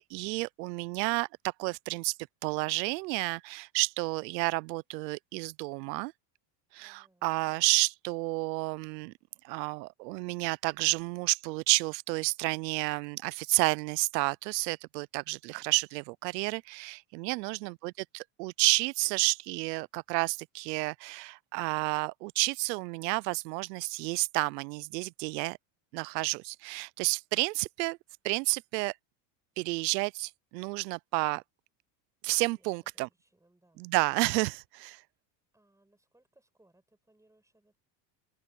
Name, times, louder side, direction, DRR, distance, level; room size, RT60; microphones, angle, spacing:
voice 1, 0.0-2.1 2.4-6.1 6.7-9.1 9.4-25.6 25.9-28.0 28.2-28.9 29.6-31.4 32.2-33.1 33.8-35.0, right 25 dB, 90° right, 0.6 m, -31 dB
voice 2, 6.8-7.3 32.5-33.9 35.5-37.8, right 1 dB, 5° right, 6.8 m, -68 dB
supercardioid pair, 115°, 48 cm